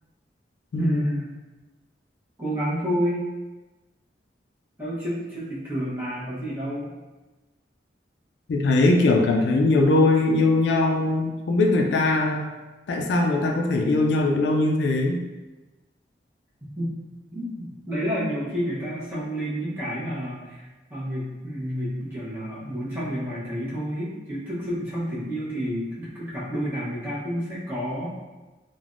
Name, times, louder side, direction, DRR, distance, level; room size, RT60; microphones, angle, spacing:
voice 1, 0.8-1.3 2.4-3.2 4.8-6.9 16.8-16.9 17.3-28.1, equal, 10° right, -10 dB, 0.8 m, -30 dB
voice 2, 8.5-12.5 12.9-15.2, left 2 dB, 70° left, 1 dB, 0.3 m, -21 dB
3.3 x 2.1 x 2.5 m, 1.2 s
head